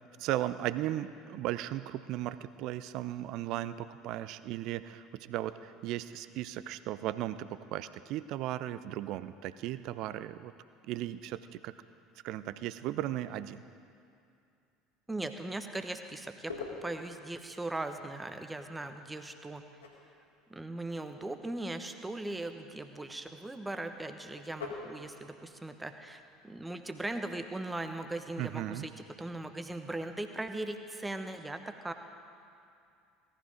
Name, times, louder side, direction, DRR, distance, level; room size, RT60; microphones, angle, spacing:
voice 1, 0.2-10.5 10.9-11.7 12.2-13.6 28.4-28.9, right 13 dB, 50° right, 14 dB, 0.5 m, -36 dB
voice 2, 15.1-16.5 16.8-19.6 20.5-28.9 29.2-31.9, right 2 dB, 10° right, 7 dB, 1.1 m, -39 dB
sound 1, 16.3-30.8, left 4 dB, 80° left, 2.6 m, -51 dB
17.5 x 14.0 x 5.1 m, 2.5 s
figure-of-eight pair, 65°, 0 cm